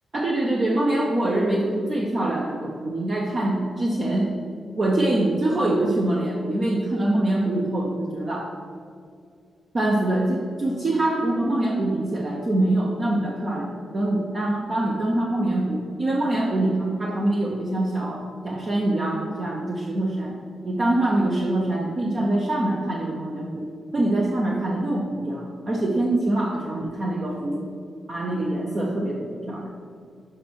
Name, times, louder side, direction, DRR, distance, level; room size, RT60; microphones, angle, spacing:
voice 1, 0.1-4.3 4.8-8.5 9.7-20.3 20.6-27.7 28.1-29.7, right 1 dB, 30° right, -1 dB, 0.7 m, -24 dB
6.6 x 5.2 x 6.0 m, 2.3 s
wide cardioid pair, 160°, 0 cm